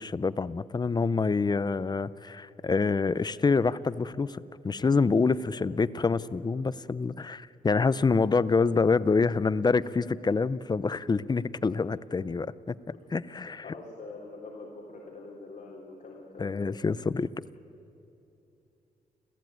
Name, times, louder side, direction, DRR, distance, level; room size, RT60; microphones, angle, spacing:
voice 1, 0.0-12.8 13.1-13.6 16.4-17.3, left 4 dB, 25° left, 16 dB, 0.6 m, -26 dB
voice 2, 5.3-5.7 12.9-13.0 13.6-16.8, left 3 dB, 55° left, -3 dB, 3.6 m, -45 dB
28.5 x 14.5 x 9.3 m, 2.9 s
cardioid pair, 100°, 15 cm